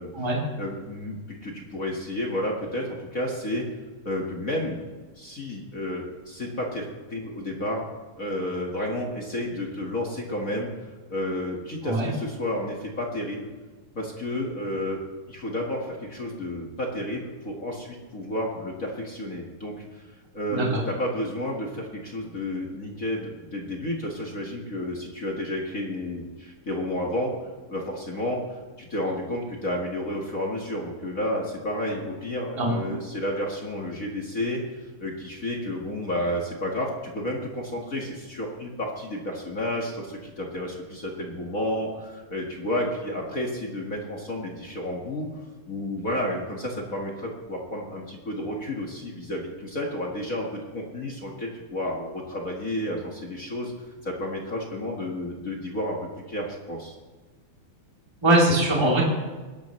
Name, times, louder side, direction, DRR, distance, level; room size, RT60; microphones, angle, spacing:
voice 1, 0.6-3.7 4.0-4.8 5.2-7.8 8.2-10.7 11.1-13.5 13.9-15.0 15.3-20.0 20.3-27.3 27.7-45.3 45.7-53.7 54.0-56.0 56.3-56.9, left 1 dB, 35° left, 0 dB, 1.5 m, -31 dB
voice 2, 20.5-20.8 32.6-32.8 58.2-59.0, right 1 dB, 10° right, -4 dB, 2.8 m, -21 dB
21.5 x 11.5 x 3.2 m, 1.3 s
omnidirectional pair, 3.7 m